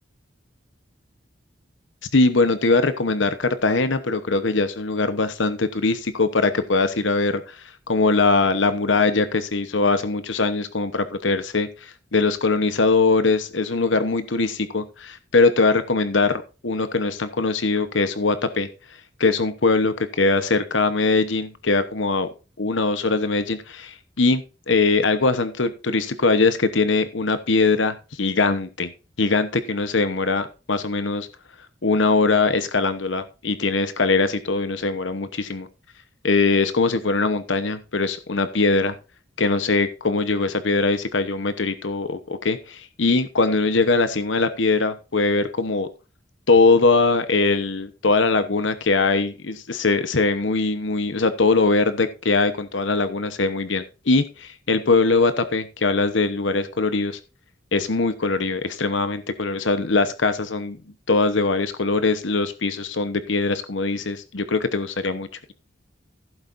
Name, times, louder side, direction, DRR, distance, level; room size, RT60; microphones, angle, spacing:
voice 1, 2.1-18.7 19.2-22.3 22.6-28.9 29.2-31.3 31.8-35.7 36.2-38.9 39.4-45.9 46.5-57.2 57.7-60.8 61.1-65.5, left 3 dB, 80° left, 11 dB, 1.0 m, -21 dB
15.5 x 8.2 x 2.6 m, 0.32 s
head